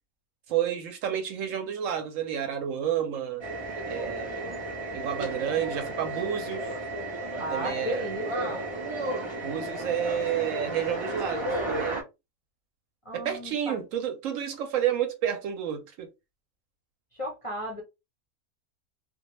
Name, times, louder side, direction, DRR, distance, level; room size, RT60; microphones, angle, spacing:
voice 1, 0.5-3.5 3.9-4.5 4.9-6.8 7.4-8.1 9.4-12.0 13.1-16.1, right 9 dB, 70° right, 0.9 m, -30 dB
sound 1, 3.4-12.0, right 1 dB, 45° right, 0.3 m, -33 dB
voice 2, 7.4-8.6 13.0-13.8 17.2-17.8, equal, 35° left, 0.5 m, -34 dB
2.2 x 2.2 x 2.9 m
omnidirectional pair, 1.5 m